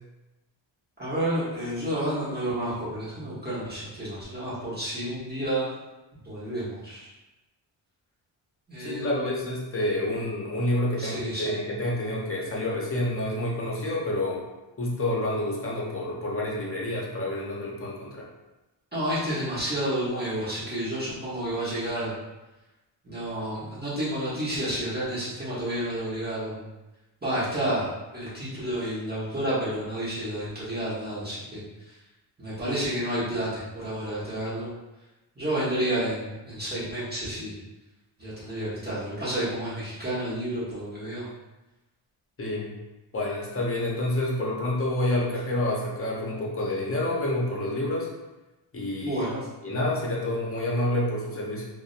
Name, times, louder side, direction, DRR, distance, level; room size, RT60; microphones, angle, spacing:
voice 1, 1.0-5.7 6.2-7.1 8.7-9.3 11.0-11.6 18.9-22.2 23.0-26.7 27.2-32.0 32.4-34.7 35.3-37.6 38.2-41.3 49.0-49.5, right 1 dB, 20° right, -10 dB, 1.0 m, -30 dB
voice 2, 8.8-14.4 14.8-18.2 42.4-42.7 43.1-48.1 48.7-49.2 49.6-51.7, left 1 dB, 30° left, -4 dB, 0.7 m, -28 dB
2.5 x 2.1 x 2.4 m, 1.0 s
cardioid pair, 80°, 47 cm